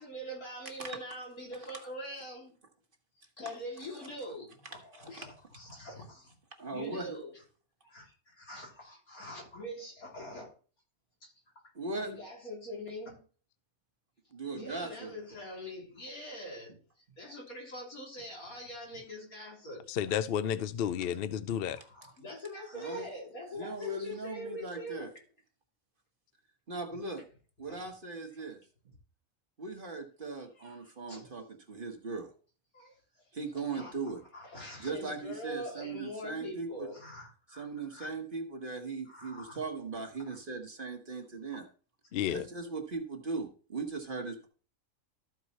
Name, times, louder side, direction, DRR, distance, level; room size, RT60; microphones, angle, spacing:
voice 1, 0.0-2.5 3.4-5.3 5.5-6.3 6.7-7.4 7.8-10.5 11.2-11.3 12.0-13.2 14.5-16.8 17.2-20.1 21.5-25.1 27.7-27.9 28.4-28.5 30.6-31.2 32.7-33.0 33.5-33.9 34.3-38.1 39.1-39.6 40.3-40.4, equal, 90° left, 3.9 m, -44 dB
voice 2, 6.6-7.2 11.7-12.1 14.3-15.1 22.7-23.1 23.5-25.1 26.7-27.3 27.6-28.6 29.6-32.3 33.3-34.2 34.8-36.9 37.5-41.7 42.3-44.5, right 3 dB, 40° right, 1.3 m, -39 dB
voice 3, 19.9-21.8 42.1-42.4, left 9 dB, 65° left, 0.6 m, -31 dB
13.5 x 4.7 x 4.1 m
omnidirectional pair, 1.5 m